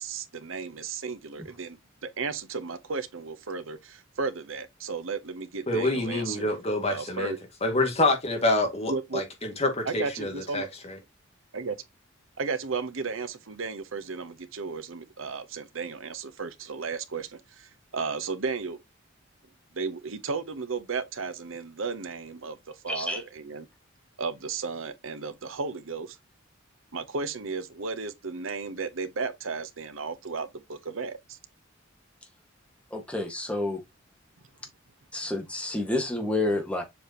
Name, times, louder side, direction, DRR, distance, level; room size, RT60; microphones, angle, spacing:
voice 1, 0.0-6.5 6.9-7.4 8.9-9.2 9.8-10.7 11.5-11.8 12.4-18.8 19.7-23.7 24.2-26.2 26.9-31.4, right 4 dB, 85° right, 0.9 m, -34 dB
voice 2, 5.7-7.3 7.6-11.0, left 2 dB, 30° left, 2.1 m, -27 dB
voice 3, 22.9-23.2 32.9-33.8 35.1-36.8, left 2 dB, 5° left, 1.7 m, -29 dB
7.2 x 4.8 x 2.9 m
head